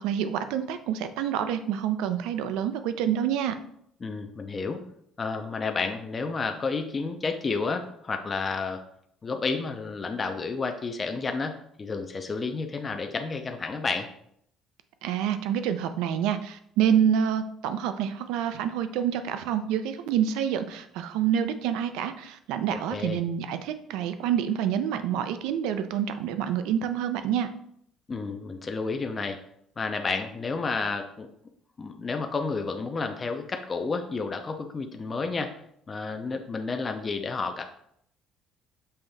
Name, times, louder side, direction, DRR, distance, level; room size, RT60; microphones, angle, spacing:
voice 1, 0.0-3.6 15.0-27.5, right 9 dB, 85° right, 10 dB, 0.4 m, -27 dB
voice 2, 4.0-4.8 5.2-8.8 9.2-14.1 22.9-23.2 28.1-29.4 29.8-31.3 31.8-35.6 35.9-37.6, left 4 dB, 30° left, 5 dB, 0.5 m, -31 dB
5.5 x 2.6 x 3.4 m, 0.70 s
cardioid pair, 100°, 0 cm